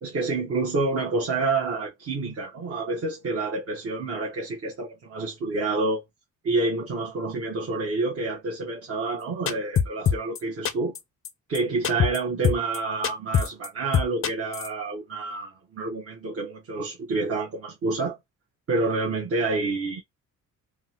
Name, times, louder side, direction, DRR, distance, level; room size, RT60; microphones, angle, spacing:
voice 1, 0.0-6.0 6.4-11.0 11.5-18.2 18.7-20.0, right 3 dB, 45° right, 1.0 m, -28 dB
sound 1, 9.5-10.4 10.7-11.0 11.2-11.3 11.5-11.6 11.8-12.2 12.4-12.8 13.0-13.7 13.9-14.7, left 7 dB, 40° left, 0.5 m, -23 dB
3.5 x 2.1 x 2.8 m
cardioid pair, 105°, 32 cm